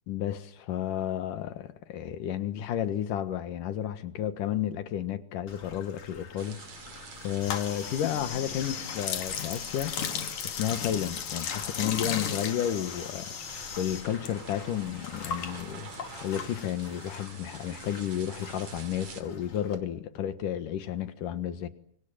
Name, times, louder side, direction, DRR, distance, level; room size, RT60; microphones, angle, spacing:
voice 1, 0.1-6.6 7.2-9.9 10.4-13.3 13.8-15.9 16.2-21.7, left 10 dB, 90° left, 3.1 m, -32 dB
Bathtub (filling or washing), 5.5-19.8, left 5 dB, 45° left, 3.3 m, -46 dB
sound 1, 6.4-19.2, right 6 dB, 60° right, 3.8 m, -48 dB
sound 2, 7.4-14.3 14.6-17.0, left 8 dB, 65° left, 3.2 m, -35 dB
28.5 x 25.0 x 7.5 m
omnidirectional pair, 3.7 m